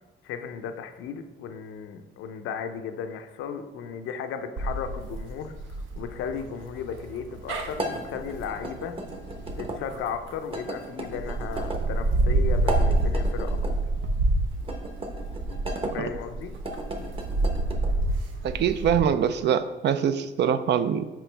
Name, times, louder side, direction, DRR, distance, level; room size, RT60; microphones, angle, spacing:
voice 1, 0.2-5.5 6.0-8.9 9.6-13.6 15.9-16.5, left 7 dB, 85° left, 7 dB, 0.6 m, -35 dB
sound 1, 4.6-10.5 11.1-19.0, right 2 dB, 80° right, 0.9 m, -28 dB
sound 2, 7.7-9.8 10.5-11.8 12.5-13.8 14.6-15.9 16.5-17.9, right 1 dB, 25° right, 1.0 m, -35 dB
voice 2, 18.4-21.1, right 8 dB, 60° right, 12 dB, 0.4 m, -24 dB
6.1 x 4.8 x 3.3 m, 1.1 s
cardioid pair, 90°, 20 cm